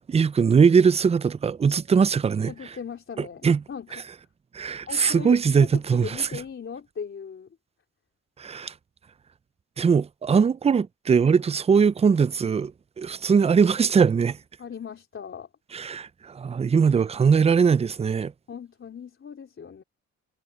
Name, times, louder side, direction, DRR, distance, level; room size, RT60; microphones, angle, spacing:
voice 1, 0.1-2.5 3.2-3.6 4.5-6.3 8.4-8.7 9.8-12.7 13.0-14.4 15.7-18.3, right 6 dB, 20° right, 0.4 m, -21 dB
voice 2, 2.5-4.1 4.9-7.6 14.6-15.5 18.5-19.8, left 6 dB, 40° left, 3.6 m, -38 dB
cardioid pair, 90°, 30 cm